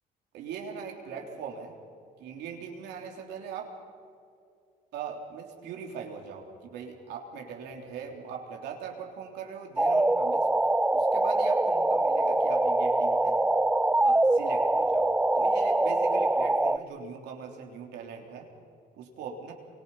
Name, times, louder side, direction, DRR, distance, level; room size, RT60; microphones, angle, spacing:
voice 1, 0.3-1.7 2.2-3.7 4.9-10.5 10.9-13.4 14.0-18.5 19.0-19.5, right 6 dB, 85° right, 2 dB, 3.5 m, -41 dB
sound 1, 9.8-16.8, right 2 dB, 10° right, 0.5 m, -24 dB
28.5 x 24.0 x 5.6 m, 2.4 s
cardioid pair, 110°, 17 cm